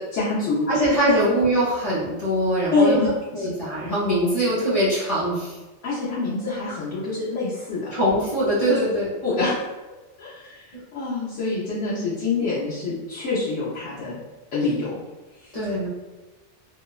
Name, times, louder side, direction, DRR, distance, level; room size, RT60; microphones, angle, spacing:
voice 1, 0.0-0.7 2.7-3.5 5.8-7.9 8.7-8.8 9.2-9.5 10.2-10.7 10.9-14.2 14.5-15.0 15.4-15.5, left 3 dB, 85° left, -10 dB, 1.0 m, -25 dB
voice 2, 0.7-3.1 3.3-5.6 7.9-9.1 10.7-10.8 15.5-15.9, right 1 dB, 40° left, -8 dB, 0.6 m, -22 dB
2.8 x 2.0 x 2.3 m, 1.1 s
omnidirectional pair, 1.2 m